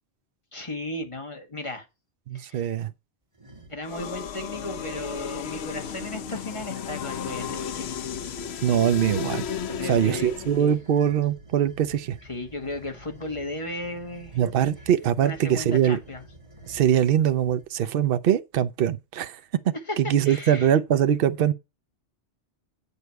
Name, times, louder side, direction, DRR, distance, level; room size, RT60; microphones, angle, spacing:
voice 1, 0.5-1.9 2.3-2.7 3.7-8.0 8.5-8.7 9.7-10.4 12.2-14.4 15.2-16.2 17.8-17.9 19.7-20.0 20.2-20.7, left 2 dB, 25° left, 1.6 m, -35 dB
voice 2, 2.3-2.9 8.6-9.4 9.9-12.2 14.3-16.0 16.7-19.4 19.6-21.5, right 9 dB, 60° right, 0.8 m, -22 dB
sound 1, 3.3-3.9 4.5-5.1 5.7-17.7, right 1 dB, 25° right, 2.3 m, -49 dB
sound 2, 3.8-10.8, left 7 dB, 70° left, 0.9 m, -34 dB
7.9 x 7.0 x 4.6 m
omnidirectional pair, 1.2 m